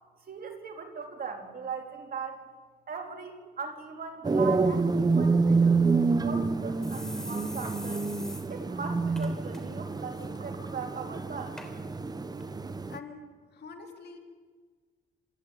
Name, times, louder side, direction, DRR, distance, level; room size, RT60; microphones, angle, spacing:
voice 1, 0.3-2.4 2.9-8.1 8.5-11.6, right 5 dB, 45° right, 3 dB, 3.6 m, -39 dB
sound 1, 4.2-13.0, right 4 dB, 20° right, 0.8 m, -27 dB
sound 2, 6.3-6.4 6.8-8.4 8.8-8.9 9.2-9.6 9.9-10.3 10.9-11.0 11.6-11.7 12.4-12.5, equal, 5° left, 3.8 m, -44 dB
voice 2, 12.9-13.3 13.5-14.2, left 4 dB, 55° left, 3 dB, 3.3 m, -44 dB
26.0 x 11.5 x 8.9 m, 1.5 s
cardioid pair, 90°, 20 cm